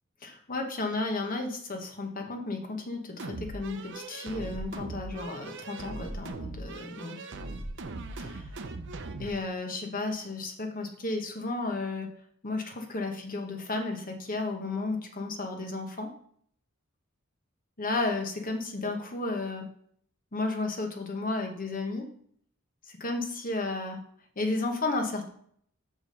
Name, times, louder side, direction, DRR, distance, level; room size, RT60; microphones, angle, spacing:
voice 1, 0.2-7.2 8.2-8.4 9.2-12.1 12.4-16.1 17.8-19.7 20.3-22.1 23.0-24.0 24.4-25.3, left 2 dB, 40° left, 4 dB, 1.2 m, -33 dB
sound 1, 3.2-9.4, right 2 dB, 60° right, 0.7 m, -39 dB
6.2 x 5.0 x 5.2 m, 0.63 s
head